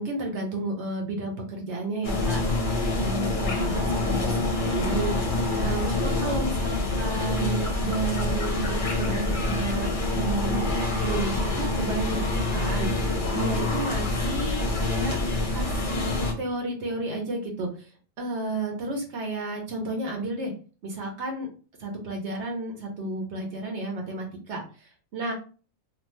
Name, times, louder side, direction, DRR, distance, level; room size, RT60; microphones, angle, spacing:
voice 1, 0.0-10.7 11.0-15.2 15.5-20.5 20.8-21.5 21.8-25.3, right 2 dB, 60° right, 1 dB, 1.0 m, -32 dB
sound 1, 2.0-16.3, left 2 dB, 50° left, 0.7 m, -26 dB
2.6 x 2.4 x 3.0 m, 0.37 s
omnidirectional pair, 1.4 m